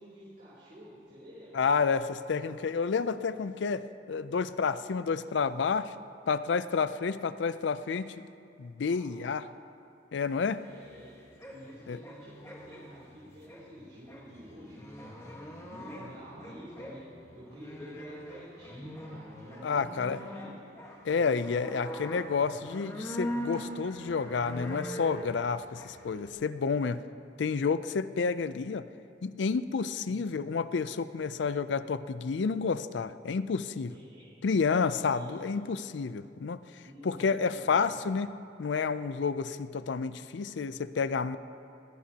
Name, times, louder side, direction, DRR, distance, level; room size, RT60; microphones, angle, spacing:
voice 1, 0.0-1.7 8.9-9.3 10.6-11.2 11.5-14.7 15.0-15.4 15.7-20.5 21.1-22.1 30.1-30.3 33.9-34.3 35.0-35.4 36.8-38.1, equal, 55° right, -9 dB, 3.4 m, -50 dB
voice 2, 1.5-3.8 4.1-5.9 6.3-8.1 8.6-9.4 10.1-10.6 11.9-12.0 19.6-20.2 21.1-27.0 27.4-28.8 29.2-33.9 34.4-36.6 37.0-38.3 38.6-41.4, left 5 dB, 75° left, 14 dB, 0.4 m, -30 dB
sound 1, 10.4-26.3, equal, 15° left, 1.4 m, -42 dB
20.0 x 15.0 x 2.9 m, 2.7 s
head